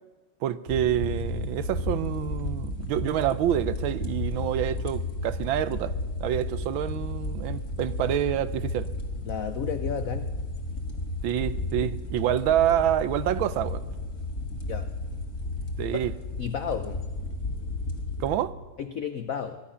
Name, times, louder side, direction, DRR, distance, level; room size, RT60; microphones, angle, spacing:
voice 1, 0.4-5.9 6.2-8.9 11.2-13.8 15.8-16.1 18.2-18.5, right 11 dB, 80° right, 1.4 m, -27 dB
sound 1, 0.7-18.4, left 2 dB, 35° left, 1.7 m, -33 dB
voice 2, 9.3-10.3 14.7-14.9 16.4-17.0 18.8-19.6, left 8 dB, 75° left, 0.7 m, -32 dB
22.5 x 11.5 x 5.6 m
omnidirectional pair, 2.2 m